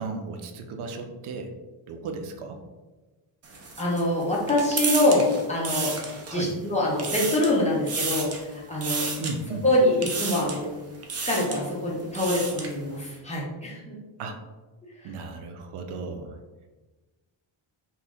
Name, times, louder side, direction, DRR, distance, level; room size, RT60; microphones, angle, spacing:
voice 1, 0.0-1.5 1.9-2.6 6.3-6.5 9.2-9.6 14.2-14.4 15.0-16.4, right 3 dB, 75° right, 5 dB, 0.6 m, -35 dB
sound 1, 3.4-6.5 6.8-7.6 7.9-8.4 8.8-9.3 10.0-10.6 11.0-11.6 12.0-12.8, right 4 dB, 30° right, 0.4 m, -31 dB
voice 2, 3.8-6.0 6.3-9.1 9.6-10.7 11.3-13.9 15.0-15.1, left 1 dB, 15° left, -5 dB, 0.7 m, -25 dB
3.1 x 2.6 x 3.5 m, 1.2 s
wide cardioid pair, 155°, 50 cm